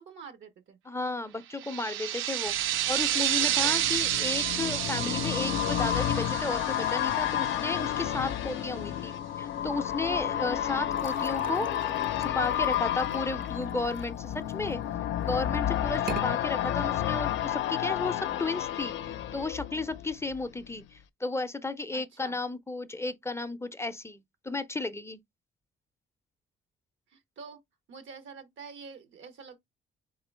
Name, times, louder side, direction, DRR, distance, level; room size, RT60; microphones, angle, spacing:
voice 1, 0.0-0.8 1.6-1.8 3.4-3.9 12.3-13.4 17.8-18.6 21.9-22.4 27.1-27.6 27.9-29.6, right 5 dB, 75° right, 0.9 m, -48 dB
voice 2, 0.9-11.7 12.2-14.8 15.2-25.2, left 3 dB, 15° left, 0.5 m, -34 dB
sound 1, 1.6-7.9, right 13 dB, 90° right, 0.4 m, -30 dB
sound 2, 2.6-20.4 20.7-20.8, left 11 dB, 70° left, 0.5 m, -31 dB
sound 3, 10.9-14.7 15.2-15.6 16.0-16.3, right 6 dB, 45° right, 0.6 m, -42 dB
3.8 x 3.7 x 3.2 m
cardioid pair, 90°, 20 cm